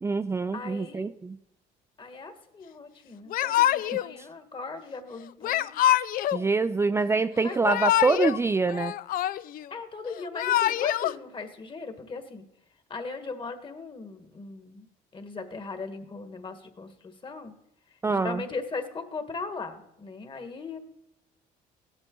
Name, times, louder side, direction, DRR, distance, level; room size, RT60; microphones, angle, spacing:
voice 1, 0.0-1.4 6.3-8.9 18.0-18.4, right 4 dB, 15° right, 9 dB, 0.4 m, -25 dB
voice 2, 0.5-1.1 2.0-5.8 7.4-7.8 9.7-12.4 12.9-14.8 15.1-17.5 18.1-20.8, left 4 dB, 30° left, 8 dB, 1.6 m, -38 dB
Yell / Crying sobbing, 3.3-4.1 5.4-6.4 7.5-8.4 8.7-9.7 10.2-11.1, left 12 dB, 60° left, 0.4 m, -25 dB
16.5 x 9.9 x 3.9 m, 0.82 s
cardioid pair, 90°, 17 cm